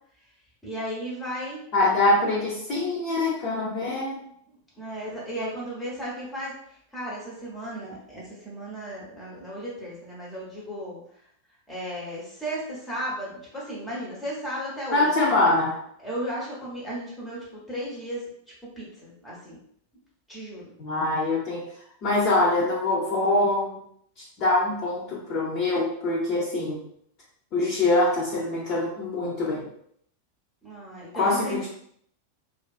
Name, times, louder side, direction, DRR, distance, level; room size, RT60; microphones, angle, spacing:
voice 1, 0.6-1.6 4.8-11.0 11.7-15.1 16.0-18.2 18.6-19.6 20.3-20.7 30.6-31.7, equal, 10° left, -6 dB, 0.9 m, -35 dB
voice 2, 1.7-4.2 14.9-15.8 20.8-21.6 22.0-23.8 24.2-26.8 27.5-29.7 31.1-31.7, left 2 dB, 40° left, -7 dB, 0.7 m, -24 dB
2.5 x 2.3 x 2.4 m, 0.68 s
figure-of-eight pair, 90°, 0 cm